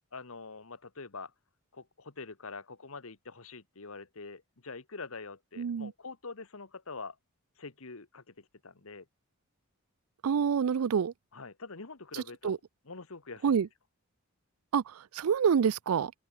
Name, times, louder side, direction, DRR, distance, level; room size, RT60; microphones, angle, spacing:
voice 1, 0.1-1.3 1.7-7.2 7.6-9.1 11.3-12.6 12.8-13.6, left 4 dB, 75° left, 1.5 m, -45 dB
voice 2, 5.6-5.9 10.2-11.1 12.1-12.6 13.4-13.7 14.7-16.1, right 7 dB, 80° right, 0.4 m, -27 dB
open air
head